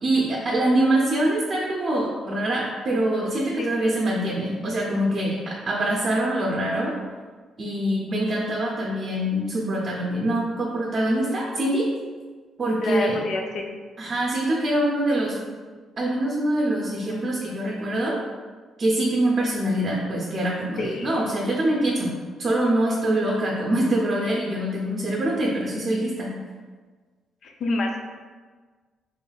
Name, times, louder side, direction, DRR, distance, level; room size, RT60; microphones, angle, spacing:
voice 1, 0.0-6.9 7.6-11.9 12.6-13.2 14.0-15.4 16.0-18.2 18.8-22.1 22.4-26.3, right 1 dB, 45° right, -3 dB, 0.6 m, -24 dB
voice 2, 3.6-3.9 12.8-13.7 20.8-21.1 27.4-28.0, left 2 dB, 60° left, 2 dB, 0.5 m, -28 dB
3.8 x 3.1 x 2.3 m, 1.4 s
cardioid pair, 90°, 0 cm